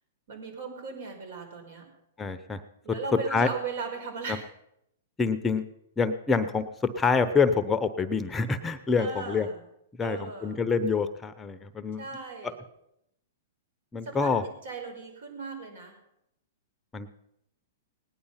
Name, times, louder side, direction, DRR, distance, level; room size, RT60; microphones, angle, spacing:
voice 1, 0.3-1.9 2.8-4.5 9.0-9.6 10.0-10.7 12.0-12.6 14.0-16.0, right 4 dB, 70° right, 3 dB, 5.3 m, -38 dB
voice 2, 2.2-2.6 3.3-3.5 4.3-4.4 5.2-5.6 6.0-6.6 7.0-9.5 10.0-12.0 13.9-14.4 16.9-17.1, left 5 dB, 15° left, 10 dB, 0.8 m, -26 dB
18.0 x 10.0 x 5.8 m, 0.79 s
hypercardioid pair, 130°, 0 cm